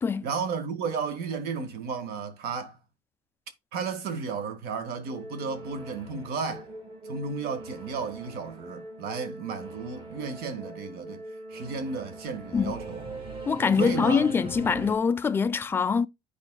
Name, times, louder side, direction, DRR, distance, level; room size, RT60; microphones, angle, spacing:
voice 1, 0.2-2.8 3.7-6.7 7.0-11.2 11.5-13.1 13.8-14.3, right 5 dB, 60° right, 1.4 m, -33 dB
Singing / Musical instrument, 5.0-14.9, right 2 dB, 30° right, 1.7 m, -41 dB
voice 2, 13.5-16.1, left 5 dB, 10° left, 0.3 m, -24 dB
13.5 x 4.9 x 2.2 m
cardioid pair, 160°, 18 cm